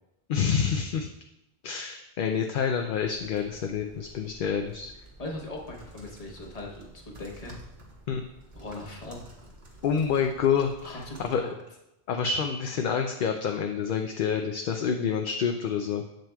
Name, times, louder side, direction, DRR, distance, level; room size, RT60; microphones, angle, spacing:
voice 1, 0.3-1.1 1.6-4.9 8.1-8.2 9.8-11.4 12.1-16.0, left 7 dB, 65° left, 4 dB, 0.7 m, -28 dB
sound 1, 2.9-11.4, right 1 dB, 85° right, 1.5 m, -50 dB
voice 2, 5.2-7.6 8.5-9.2 10.8-11.5, left 2 dB, 40° left, 0 dB, 1.2 m, -39 dB
7.7 x 7.3 x 2.3 m, 0.90 s
omnidirectional pair, 1.0 m